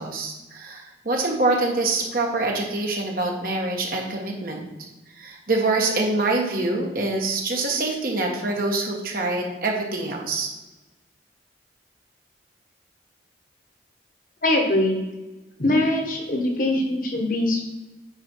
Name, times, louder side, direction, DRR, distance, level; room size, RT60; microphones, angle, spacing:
voice 1, 0.0-4.6 5.2-10.5, right 2 dB, 50° right, 0 dB, 1.4 m, -25 dB
voice 2, 14.4-15.0 15.6-17.6, left 1 dB, 50° left, 2 dB, 1.4 m, -22 dB
8.6 x 5.2 x 4.5 m, 1.1 s
head